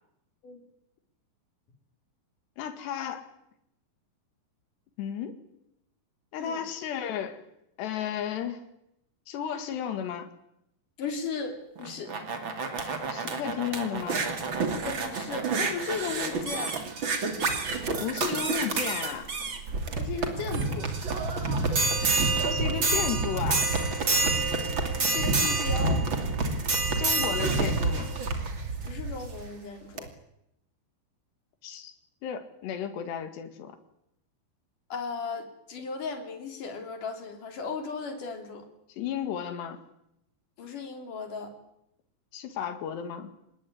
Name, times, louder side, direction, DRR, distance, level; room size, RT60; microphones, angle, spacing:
voice 1, 2.6-3.3 5.0-5.4 6.3-7.4 7.8-8.6 9.3-10.3 13.1-14.3 18.0-19.3 22.4-23.7 25.5-25.6 26.8-28.2 31.6-31.9 32.2-33.8 39.0-39.8 42.3-43.3, left 8 dB, 80° left, 8 dB, 4.2 m, -33 dB
voice 2, 11.0-12.1 14.9-16.8 20.0-20.9 24.4-24.5 25.1-26.0 28.8-30.1 34.9-38.7 40.6-41.5, left 5 dB, 50° left, 5 dB, 4.5 m, -36 dB
sound 1, 11.8-29.4 30.0-30.1, right 3 dB, 35° right, 2.7 m, -28 dB
25.5 x 20.0 x 9.6 m, 0.80 s
omnidirectional pair, 4.8 m